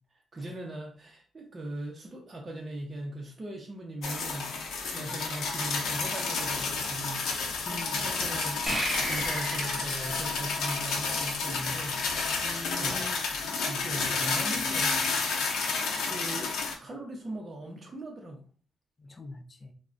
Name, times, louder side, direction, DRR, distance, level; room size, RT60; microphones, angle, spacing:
voice 1, 0.3-4.5 4.9-12.0 12.8-15.4 16.1-16.5 16.8-18.4, right 1 dB, 30° right, -1 dB, 0.5 m, -40 dB
sound 1, 4.0-16.7, left 4 dB, 90° left, 0.6 m, -31 dB
voice 2, 7.7-8.0 12.4-13.2 19.0-19.7, left 2 dB, 30° left, 6 dB, 0.4 m, -42 dB
sound 2, 8.7-11.7, right 1 dB, 5° right, 1.1 m, -34 dB
3.4 x 2.0 x 2.4 m, 0.42 s
cardioid pair, 110°, 0 cm